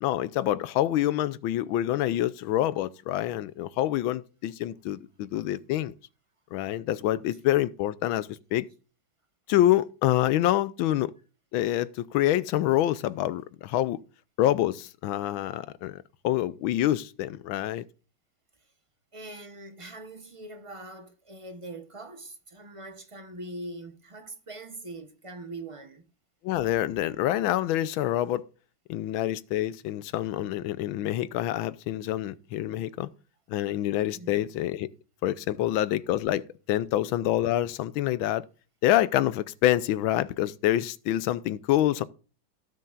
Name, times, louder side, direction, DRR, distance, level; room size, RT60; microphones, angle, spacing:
voice 1, 0.0-5.9 6.5-8.7 9.5-11.1 11.5-14.0 14.4-17.8 26.4-28.4 28.9-33.1 33.5-34.9 35.2-38.4 38.8-42.0, left 13 dB, 85° left, 1.4 m, -26 dB
voice 2, 19.1-26.0 34.1-34.5, right 2 dB, 25° right, 0.6 m, -42 dB
17.0 x 6.7 x 2.4 m
omnidirectional pair, 2.2 m